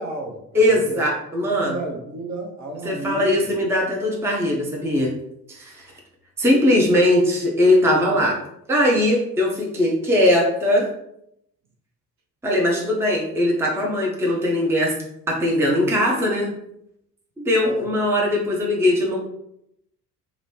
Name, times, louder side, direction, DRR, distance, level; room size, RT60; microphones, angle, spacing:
voice 1, 0.0-1.0 1.4-3.5 17.6-17.9, right 2 dB, 35° right, -1 dB, 0.8 m, -32 dB
voice 2, 0.5-1.7 2.8-5.1 5.5-5.8 6.4-8.4 8.7-10.9 12.4-14.9 15.3-16.5 17.4-19.2, left 1 dB, 5° right, -2 dB, 0.7 m, -20 dB
3.8 x 2.1 x 3.2 m, 0.77 s
figure-of-eight pair, 50°, 47 cm